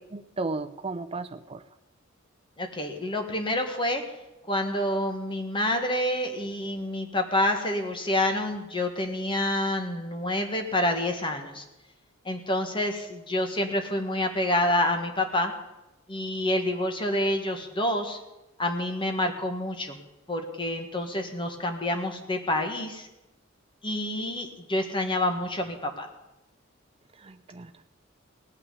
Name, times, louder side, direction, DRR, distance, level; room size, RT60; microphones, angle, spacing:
voice 1, 0.1-1.6 27.1-27.8, right 3 dB, 30° right, 8 dB, 0.6 m, -35 dB
voice 2, 2.6-4.0 4.5-11.6 12.2-15.5 16.1-18.2 18.6-20.0 20.3-23.1 23.8-26.1, left 1 dB, 25° left, 4 dB, 1.6 m, -28 dB
18.0 x 6.0 x 9.8 m, 0.99 s
head